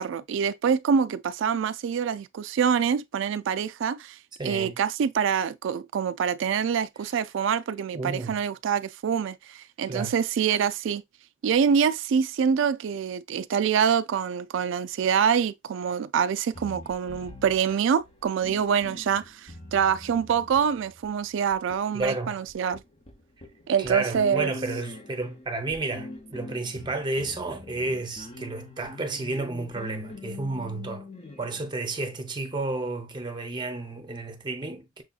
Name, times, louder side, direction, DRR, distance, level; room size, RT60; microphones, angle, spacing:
voice 1, 0.0-4.2 4.4-11.0 11.4-22.8 23.7-24.5, right 7 dB, 65° right, 0.3 m, -25 dB
voice 2, 4.4-4.8 7.9-8.4 9.9-10.2 21.9-22.4 23.8-31.1 31.4-35.0, right 2 dB, 25° right, 0.7 m, -32 dB
sound 1, 16.5-31.7, left 2 dB, 30° left, 0.8 m, -43 dB
6.2 x 2.8 x 2.3 m
head